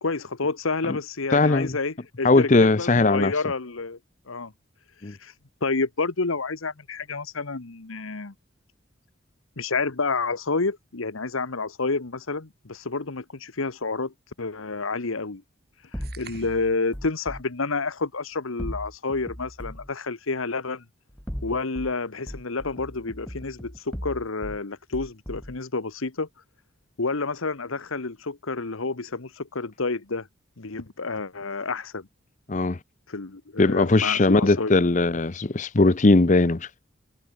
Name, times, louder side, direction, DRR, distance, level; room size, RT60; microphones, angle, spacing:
voice 1, 0.0-4.0 4.3-4.5 5.1-5.3 5.6-8.3 9.6-15.4 16.2-20.8 21.4-26.3 27.0-30.3 30.6-32.1 33.1-34.8, left 3 dB, 85° left, 1.3 m, -29 dB
voice 2, 1.3-1.7 2.2-3.3 5.0-5.1 32.5-32.8 33.6-36.8, left 2 dB, 35° left, 0.7 m, -19 dB
sound 1, 15.9-17.4 18.6-19.9 21.1-21.9 22.3-24.6 24.9-25.6, equal, 5° left, 1.2 m, -37 dB
sound 2, 16.0-16.8, right 9 dB, 50° right, 6.4 m, -47 dB
head